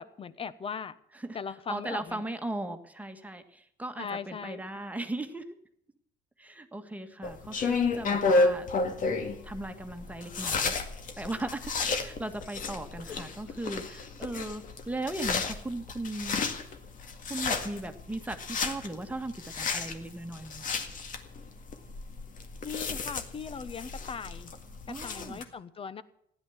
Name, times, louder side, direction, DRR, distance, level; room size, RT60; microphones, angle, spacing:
voice 1, 0.0-1.0 1.3-2.2 4.0-4.6 22.6-24.5 25.0-26.0, left 6 dB, 35° left, 15 dB, 1.0 m, -39 dB
voice 2, 1.7-5.5 6.4-8.7 9.4-10.8 11.2-16.4 17.3-20.7 24.9-25.4, right 2 dB, 10° right, 7 dB, 1.7 m, -37 dB
sound 1, 7.2-25.4, left 3 dB, 50° left, 2.0 m, -32 dB
15.5 x 11.0 x 7.2 m, 0.72 s
cardioid pair, 110°, 17 cm